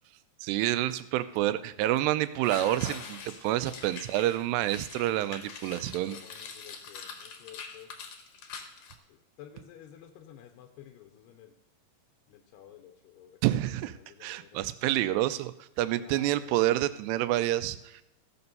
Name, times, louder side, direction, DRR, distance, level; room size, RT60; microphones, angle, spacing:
voice 1, 0.4-6.2 13.4-13.9 14.2-18.0, right 14 dB, 85° right, 13 dB, 2.7 m, -28 dB
sound 1, 1.8-1.9 2.4-9.0, left 5 dB, 65° left, 1.9 m, -44 dB
voice 2, 5.9-7.9 9.1-11.6 12.3-14.6 15.9-16.7, left 10 dB, 85° left, 4 dB, 2.9 m, -52 dB
15.5 x 6.9 x 5.4 m, 0.90 s
omnidirectional pair, 4.8 m